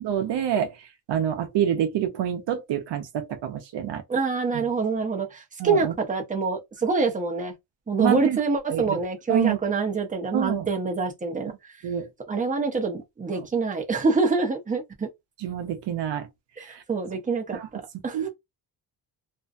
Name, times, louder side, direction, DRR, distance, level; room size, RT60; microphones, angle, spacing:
voice 1, 0.0-4.0 5.6-5.9 8.0-8.4 8.7-9.0 9.3-9.6 10.3-10.7 11.8-12.1 13.4-13.5 15.4-16.3 16.7-16.8 17.5-17.7 18.1-18.3, right 9 dB, 75° right, 0.7 m, -27 dB
voice 2, 4.1-7.5 7.9-11.5 12.3-15.1 16.6-18.3, right 4 dB, 20° right, 0.7 m, -26 dB
2.6 x 2.2 x 2.5 m
cardioid pair, 100°, 43 cm